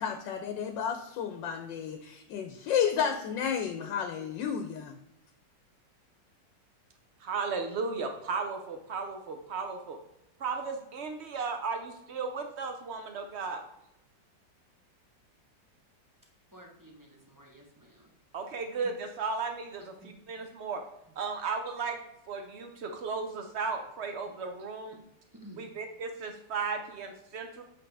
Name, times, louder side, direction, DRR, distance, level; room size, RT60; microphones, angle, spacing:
voice 1, 0.0-5.0, left 8 dB, 85° left, 6 dB, 1.3 m, -32 dB
voice 2, 7.2-10.0 10.4-13.6 18.3-20.8 21.2-22.0 22.3-25.0 25.6-27.6, right 4 dB, 75° right, 5 dB, 0.6 m, -35 dB
voice 3, 16.5-18.1 20.0-20.1 25.4-25.7, right 1 dB, 20° right, -1 dB, 0.5 m, -52 dB
7.7 x 3.7 x 3.3 m, 0.83 s
omnidirectional pair, 1.9 m